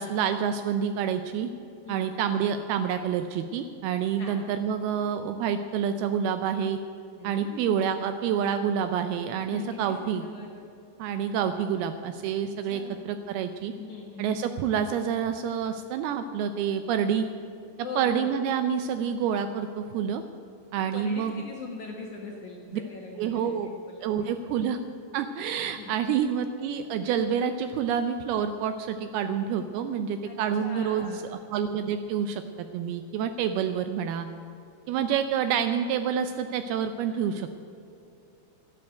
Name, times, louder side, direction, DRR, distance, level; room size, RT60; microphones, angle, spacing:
voice 1, 0.0-1.5 1.9-6.8 7.2-10.2 11.0-13.7 14.2-17.3 18.0-20.2 20.7-21.4 23.2-23.7 24.0-24.8 25.1-32.4 32.7-34.3 34.9-37.6, right 8 dB, 85° right, 9 dB, 2.2 m, -28 dB
voice 2, 7.2-7.8 9.4-10.5 12.4-13.0 13.8-14.3 17.8-18.3 20.9-24.3 25.8-25.9 30.3-31.3 37.1-37.2, left 4 dB, 60° left, -1 dB, 2.1 m, -41 dB
12.0 x 12.0 x 7.8 m, 2.6 s
omnidirectional pair, 5.1 m